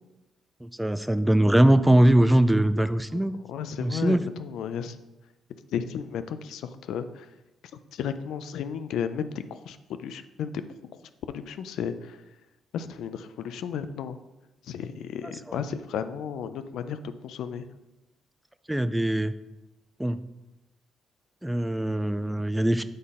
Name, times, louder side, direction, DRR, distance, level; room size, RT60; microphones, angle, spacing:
voice 1, 0.6-3.3 3.8-4.2 15.5-15.6 18.7-19.3 20.0-20.2 21.4-22.8, right 1 dB, 5° right, 12 dB, 0.4 m, -21 dB
voice 2, 3.5-5.0 5.7-7.3 7.9-10.6 11.3-12.2 12.7-14.2 14.7-17.7, left 7 dB, 80° left, 11 dB, 0.4 m, -33 dB
7.7 x 4.0 x 3.7 m, 0.99 s
cardioid pair, 90°, 0 cm